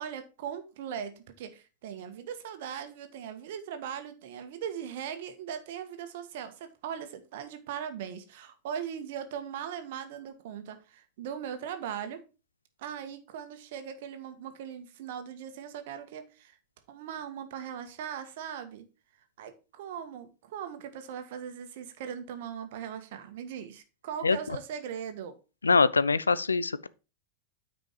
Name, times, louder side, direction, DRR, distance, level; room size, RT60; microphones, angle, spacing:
voice 1, 0.0-12.2 12.8-16.6 16.9-18.8 19.4-25.3, right 8 dB, 55° right, 1.5 m, -39 dB
voice 2, 25.6-26.9, left 4 dB, 75° left, 0.5 m, -23 dB
9.2 x 5.2 x 4.9 m
figure-of-eight pair, 90°, 0 cm